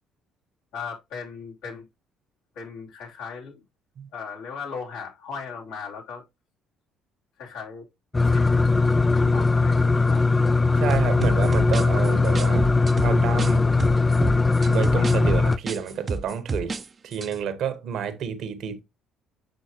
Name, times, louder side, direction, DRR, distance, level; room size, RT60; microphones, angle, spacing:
voice 1, 0.7-1.8 2.5-3.6 4.1-6.2 7.4-7.8 8.2-8.7 9.1-10.2, left 5 dB, 70° left, 3.2 m, -37 dB
sound 1, 8.1-15.6, left 3 dB, 25° left, 0.5 m, -20 dB
voice 2, 10.8-12.7 13.0-13.6 14.7-16.8 17.0-18.8, right 8 dB, 60° right, 1.2 m, -29 dB
sound 2, 10.9-13.5 13.8-16.8 17.1-17.3, right 3 dB, 35° right, 0.7 m, -29 dB
7.9 x 6.1 x 3.0 m
hypercardioid pair, 50°, 0 cm